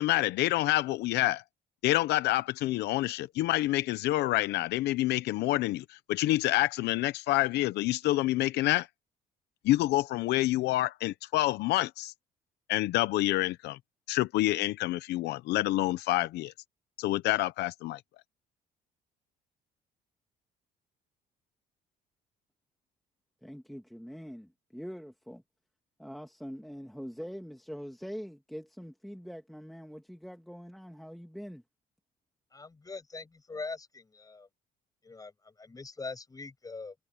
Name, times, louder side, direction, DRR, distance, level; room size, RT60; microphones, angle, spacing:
voice 1, 0.0-1.4 1.8-8.9 9.6-12.1 12.7-13.8 14.1-16.5 17.0-18.0, left 16 dB, 80° left, 0.8 m, -27 dB
voice 2, 23.4-25.4 26.0-31.6, equal, ahead, 1.8 m, -43 dB
voice 3, 32.5-34.5 35.0-36.9, left 3 dB, 20° left, 7.9 m, -42 dB
cardioid pair, 110°, 17 cm